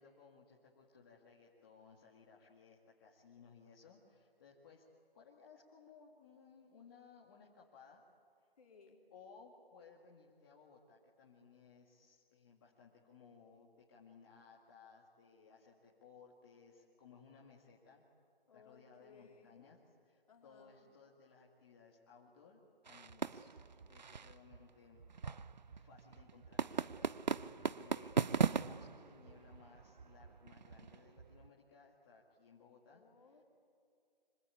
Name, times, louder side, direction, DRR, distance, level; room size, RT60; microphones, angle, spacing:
voice 1, 0.0-4.9 5.1-8.0 9.1-18.0 18.5-25.0 25.7-33.0 33.3-33.4, left 5 dB, 25° left, -3 dB, 2.1 m, -61 dB
voice 2, 8.6-9.0 18.5-19.7 20.3-21.0 32.9-33.4, left 5 dB, 40° left, 1 dB, 4.0 m, -63 dB
sound 1, 22.9-31.5, right 6 dB, 45° right, 0.7 m, -40 dB
26.5 x 25.5 x 8.6 m, 2.4 s
figure-of-eight pair, 160°, 30 cm